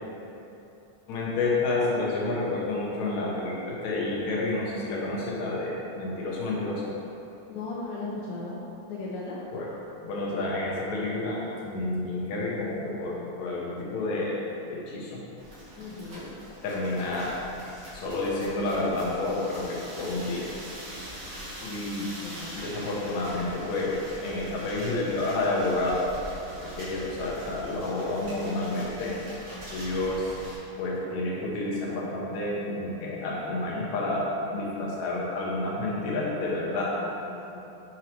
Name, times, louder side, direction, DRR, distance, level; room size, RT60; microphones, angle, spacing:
voice 1, 1.1-6.9 9.5-14.4 14.7-15.2 16.2-16.3 16.6-17.3 17.9-20.5 21.6-22.1 22.5-26.1 26.6-29.2 29.7-30.4 30.8-37.0, left 2 dB, 65° left, -5 dB, 1.9 m, -30 dB
voice 2, 7.5-8.6 8.9-9.4 15.8-16.3 22.0-22.6 36.7-37.6, left 3 dB, 85° left, -5 dB, 1.7 m, -37 dB
sound 1, 15.4-30.6, equal, 55° right, 1.7 m, -42 dB
7.5 x 4.7 x 2.9 m, 2.9 s
omnidirectional pair, 4.2 m